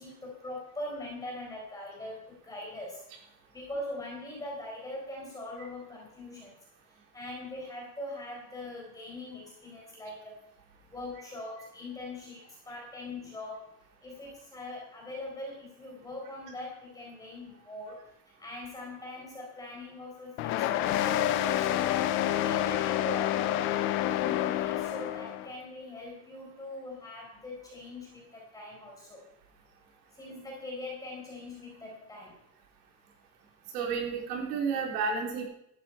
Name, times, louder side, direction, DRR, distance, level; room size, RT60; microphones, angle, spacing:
voice 1, 0.0-3.0 3.5-6.6 6.9-10.5 10.9-13.7 14.0-22.0 22.4-23.7 23.9-29.2 30.1-32.5, left 1 dB, 10° left, -2 dB, 4.3 m, -42 dB
sound 1, 20.4-25.5, left 12 dB, 30° left, 0.4 m, -28 dB
voice 2, 33.7-35.4, right 5 dB, 80° right, 0 dB, 4.1 m, -31 dB
14.0 x 10.0 x 4.6 m, 0.80 s
cardioid pair, 170°, 46 cm